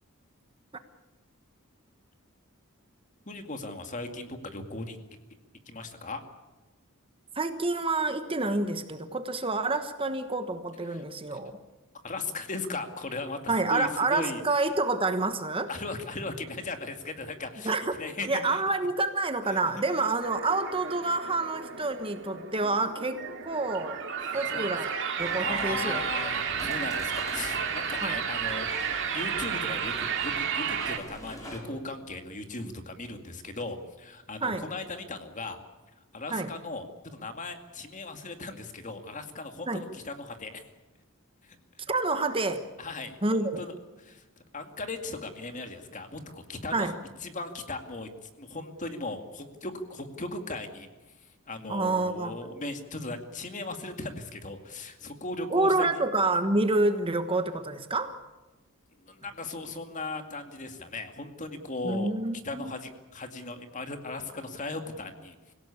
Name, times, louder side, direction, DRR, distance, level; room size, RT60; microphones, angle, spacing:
voice 1, 3.3-5.0 5.7-6.2 10.9-11.0 12.0-14.4 15.7-18.6 19.5-19.6 19.9-20.0 24.2-25.0 25.4-28.7 29.1-35.6 36.1-40.7 41.4-41.9 42.8-43.7 44.0-44.2 44.5-46.9 47.2-50.9 51.2-56.0 59.0-62.1 62.4-65.5, left 2 dB, 35° left, 7 dB, 2.2 m, -38 dB
voice 2, 7.3-11.5 13.5-15.7 17.6-17.9 18.3-24.0 24.3-26.0 28.0-28.2 34.4-34.6 36.3-36.5 39.7-39.8 41.9-42.6 43.2-43.6 46.7-46.9 51.7-52.4 55.5-58.2 61.8-62.7, right 2 dB, 25° right, 9 dB, 1.3 m, -28 dB
sound 1, 20.2-31.0, right 7 dB, 55° right, 2.7 m, -32 dB
sound 2, 25.2-31.6, equal, 15° left, 4.9 m, -44 dB
26.0 x 17.0 x 8.6 m, 1.1 s
head